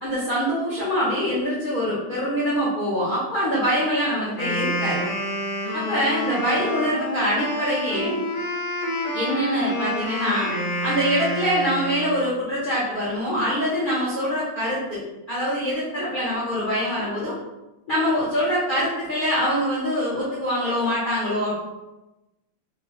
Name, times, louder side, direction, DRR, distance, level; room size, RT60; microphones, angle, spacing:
voice 1, 0.0-5.0 5.7-8.2 9.1-10.5 10.8-15.0 15.3-17.4 17.9-21.5, equal, 60° left, -8 dB, 0.5 m, -24 dB
Wind instrument woodwind instrument, 4.3-12.3, equal, 90° left, 1.8 m, -28 dB
4.4 x 2.3 x 3.0 m, 0.99 s
omnidirectional pair, 2.2 m